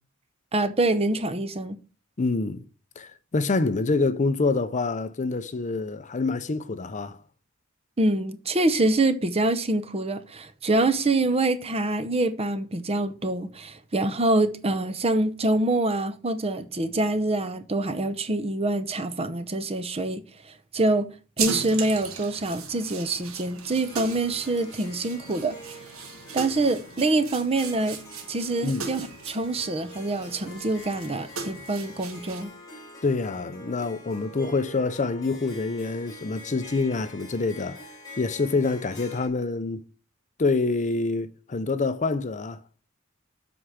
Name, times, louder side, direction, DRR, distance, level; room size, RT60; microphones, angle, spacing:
voice 1, 0.5-1.8 8.0-20.2 20.7-21.1 21.4-25.6 26.3-28.0 28.3-32.5, right 2 dB, 30° right, 0.7 m, -25 dB
voice 2, 2.2-2.6 3.0-7.2 28.6-28.9 33.0-37.9 38.2-39.8 40.4-42.6, left 3 dB, 35° left, 0.6 m, -26 dB
sound 1, 21.4-32.4, right 6 dB, 80° right, 1.4 m, -38 dB
Harp, 23.8-39.3, left 1 dB, 20° left, 4.1 m, -45 dB
8.1 x 4.9 x 5.7 m
head